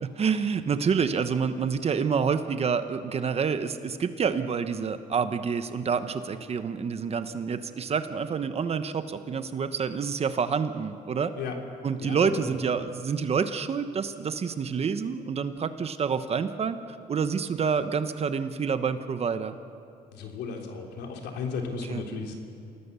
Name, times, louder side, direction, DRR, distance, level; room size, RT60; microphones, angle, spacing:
voice 1, 0.0-11.3 11.8-16.8 17.1-19.6 21.7-22.0, right 6 dB, 35° right, 10 dB, 1.1 m, -28 dB
voice 2, 12.0-12.5 20.1-22.3, left 5 dB, 80° left, 2 dB, 3.4 m, -35 dB
27.5 x 18.5 x 6.9 m, 2.5 s
cardioid pair, 110°, 17 cm